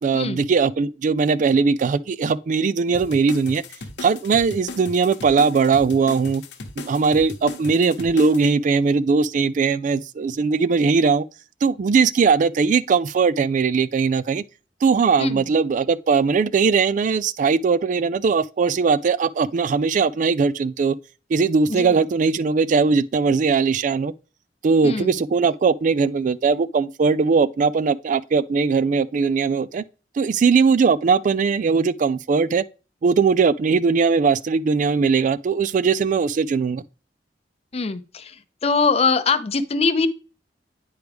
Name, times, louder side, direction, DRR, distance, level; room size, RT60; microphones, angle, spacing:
voice 1, 0.0-3.6 4.0-6.4 6.9-11.2 11.6-14.4 14.8-20.9 21.3-24.1 24.6-29.8 30.2-32.6 33.0-36.8, right 5 dB, 45° right, 0.3 m, -20 dB
sound 1, 2.9-8.5, left 2 dB, 85° left, 1.0 m, -37 dB
voice 2, 37.7-38.3 38.6-40.1, left 4 dB, 35° left, 0.6 m, -22 dB
9.2 x 4.7 x 3.4 m
head